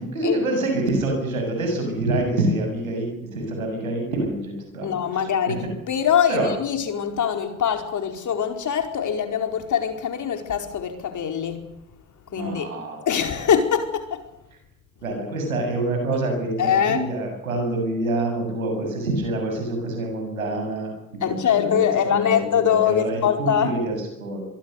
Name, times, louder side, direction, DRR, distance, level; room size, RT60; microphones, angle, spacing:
voice 1, 0.0-5.6 6.3-6.5 12.3-13.1 15.0-20.9 21.3-21.8 22.0-24.4, right 2 dB, 90° right, 3 dB, 7.6 m, -26 dB
voice 2, 4.8-11.7 12.3-14.3 16.6-17.1 21.2-23.7, left 8 dB, 45° left, 5 dB, 4.9 m, -23 dB
23.5 x 23.5 x 6.7 m, 0.85 s
hypercardioid pair, 55°, 40 cm